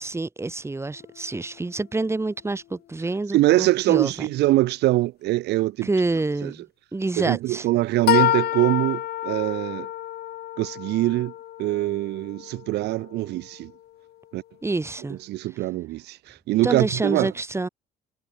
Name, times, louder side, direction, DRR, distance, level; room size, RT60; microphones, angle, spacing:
voice 1, 0.0-4.1 5.8-6.6 6.9-7.7 14.6-15.2 16.6-17.7, right 3 dB, 15° right, 7.4 m, -27 dB
sound 1, 1.0-1.3 8.0-13.8, left 13 dB, 70° left, 4.0 m, -28 dB
voice 2, 3.3-5.9 6.4-6.5 7.2-9.9 10.6-11.3 11.6-13.7 14.3-14.4 15.3-17.3, right 17 dB, 80° right, 3.9 m, -23 dB
cardioid pair, 110°, 17 cm